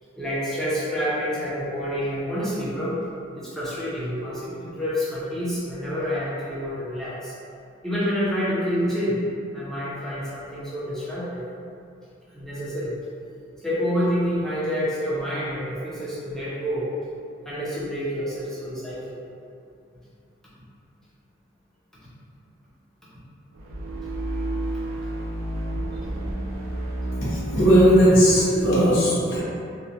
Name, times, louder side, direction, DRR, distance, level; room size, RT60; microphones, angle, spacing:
voice 1, 0.2-3.0 3.4-7.3 7.8-9.2 9.5-11.4 12.3-13.0 13.6-16.9 17.4-19.1 25.9-26.0, equal, ahead, -10 dB, 0.6 m, -28 dB
sound 1, 23.5-28.8, right 1 dB, 90° right, 0.4 m, -30 dB
voice 2, 27.2-29.4, equal, 80° left, -9 dB, 0.8 m, -17 dB
2.9 x 2.1 x 2.5 m, 2.5 s
head